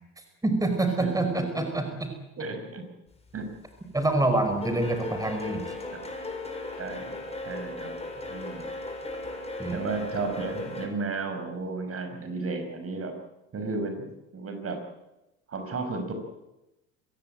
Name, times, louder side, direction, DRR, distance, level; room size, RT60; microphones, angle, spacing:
voice 1, 0.4-2.1 3.9-5.6 9.6-9.8, right 2 dB, 10° right, 7 dB, 5.0 m, -26 dB
voice 2, 2.4-2.8 3.3-3.5 4.2-4.6 6.8-7.1 7.4-7.9 8.3-8.7 9.3-13.1 13.5-14.8 15.5-16.1, right 3 dB, 35° right, 7 dB, 5.7 m, -34 dB
sound 1, 3.3-3.7 4.0-10.9, left 2 dB, 15° left, 7.0 m, -37 dB
26.0 x 16.0 x 9.0 m, 0.95 s
hypercardioid pair, 70°, 39 cm